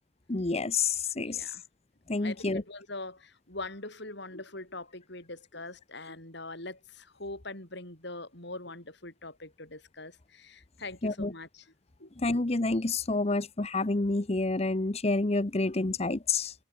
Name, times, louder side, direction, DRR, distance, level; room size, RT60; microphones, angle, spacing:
voice 1, 0.3-1.4 2.1-2.6 11.0-11.3 12.2-16.5, left 3 dB, 30° left, 0.9 m, -28 dB
voice 2, 1.2-1.6 2.2-11.7 12.0-12.1, left 2 dB, 55° left, 7.4 m, -42 dB
head